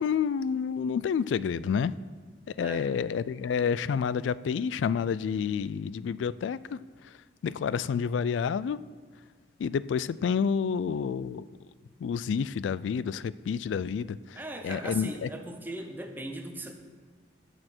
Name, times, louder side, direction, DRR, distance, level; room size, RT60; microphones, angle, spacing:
voice 1, 0.0-1.9 2.6-7.1 7.4-8.8 9.6-11.4 12.0-14.4 14.6-15.3, left 6 dB, 85° left, 17 dB, 0.3 m, -29 dB
voice 2, 14.3-16.7, right 1 dB, 10° right, 4 dB, 0.8 m, -38 dB
16.0 x 6.7 x 4.4 m, 1.5 s
head